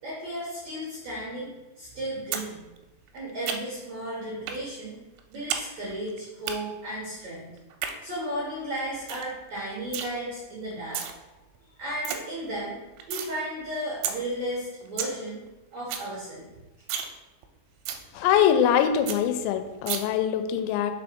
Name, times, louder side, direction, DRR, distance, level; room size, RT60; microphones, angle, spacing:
voice 1, 0.0-2.6 3.1-5.0 5.3-7.5 8.0-11.0 11.8-12.8 13.1-15.4 15.7-16.4, right 1 dB, 65° right, -6 dB, 1.8 m, -34 dB
sound 1, 2.3-2.5 2.8-3.9 4.5-4.6 4.9-5.6 5.9-6.5 7.6-7.9 8.4-8.5 8.8-8.9 9.1-9.3 9.6-10.1 10.7-11.1 11.5-11.6 11.8-12.2 12.6-13.3 13.7-13.8 14.0-14.1 14.5-14.6 14.8-15.1 15.5-15.6 15.8-16.1 16.4-16.5 16.8-17.1 17.4-17.5 17.9-18.0 18.4-18.5 18.7-18.8 19.1-19.2 19.9-20.0, right 9 dB, 85° right, 2.9 m, -31 dB
voice 2, 18.1-20.9, left 9 dB, 85° left, 8 dB, 2.9 m, -23 dB
5.9 x 4.4 x 5.0 m, 1.1 s
omnidirectional pair, 5.2 m